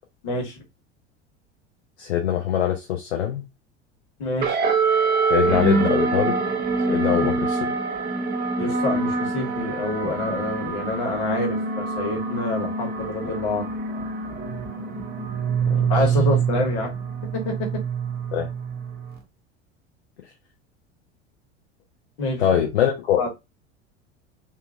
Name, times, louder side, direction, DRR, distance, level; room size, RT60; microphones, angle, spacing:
voice 1, 0.2-0.6 4.2-4.6 8.6-13.7 15.9-16.9 17.3-17.7 22.2-22.4 23.2-23.3, left 2 dB, 55° left, 1.4 m, -27 dB
voice 2, 2.0-3.4 5.3-6.4 6.9-7.6 15.7-15.9 18.3-18.5 22.4-23.2, left 10 dB, 70° left, 0.6 m, -23 dB
sound 1, 4.4-19.2, right 4 dB, 30° right, 0.9 m, -25 dB
2.6 x 2.6 x 2.4 m
figure-of-eight pair, 75°, 34 cm